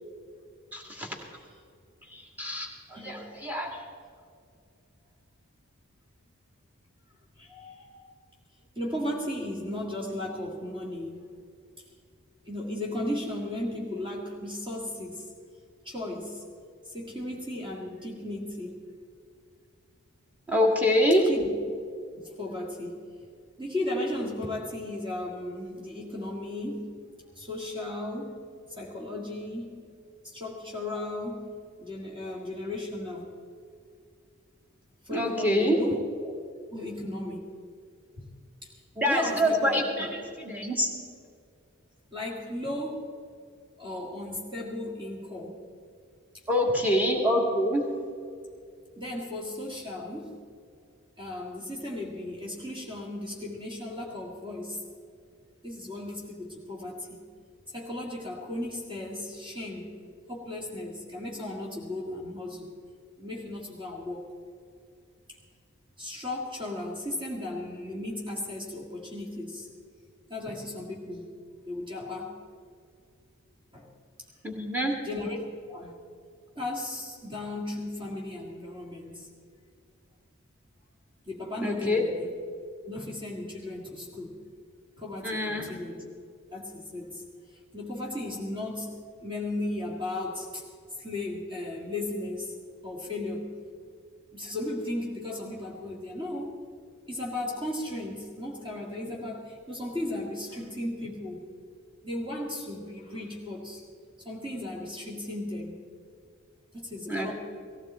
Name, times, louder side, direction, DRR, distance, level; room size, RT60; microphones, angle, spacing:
voice 1, 0.7-1.1 2.1-3.8 20.5-21.2 35.1-35.8 39.0-40.9 46.5-47.8 74.4-74.9 81.6-82.0 85.2-85.7 107.1-107.3, equal, 10° right, 0 dB, 2.1 m, -26 dB
voice 2, 2.9-3.2 7.4-8.1 8.8-11.3 12.5-15.3 15.8-16.4 16.8-18.8 21.2-21.5 22.2-23.0 23.6-26.8 27.4-28.4 28.8-29.9 30.2-33.3 35.0-36.3 36.7-37.5 38.2-38.3 38.6-40.1 42.1-43.1 43.8-45.6 49.0-50.4 51.2-54.8 55.6-57.2 57.7-59.9 60.3-62.7 63.2-64.3 66.0-69.7 70.3-71.4 71.6-72.4 73.7-73.9 75.0-76.0 76.6-79.3 81.3-82.3 82.8-84.4 85.0-86.0 86.5-87.2 87.5-88.9 89.2-90.7 91.0-92.5 92.8-93.5 94.3-96.5 97.1-101.4 102.0-103.8 104.2-105.8 106.7-107.3, left 1 dB, 25° right, -3 dB, 1.9 m, -35 dB
18.0 x 16.0 x 4.4 m, 2.3 s
head